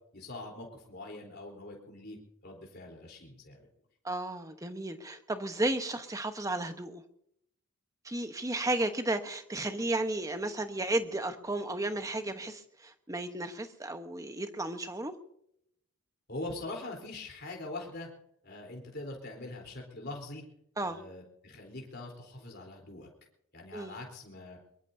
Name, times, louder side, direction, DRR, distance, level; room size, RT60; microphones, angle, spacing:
voice 1, 0.1-3.6 16.3-18.1 18.4-20.4 20.8-23.1 23.5-24.6, left 2 dB, 50° left, 0 dB, 3.9 m, -43 dB
voice 2, 4.0-7.0 8.0-15.1 20.8-21.0 23.7-23.9, right 2 dB, 15° right, 8 dB, 1.1 m, -33 dB
22.5 x 22.5 x 2.8 m, 0.73 s
head